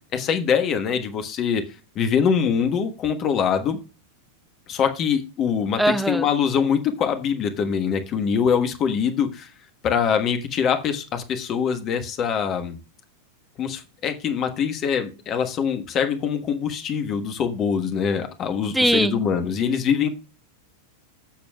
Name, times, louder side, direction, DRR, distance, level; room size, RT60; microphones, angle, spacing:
voice 1, 0.1-1.6 1.9-3.8 4.7-9.5 9.8-12.8 13.6-20.1, left 7 dB, 30° left, 1.3 m, -23 dB
voice 2, 5.8-6.2 18.7-19.2, right 1 dB, ahead, 0.5 m, -20 dB
16.0 x 6.8 x 2.3 m
figure-of-eight pair, 90°, 0 cm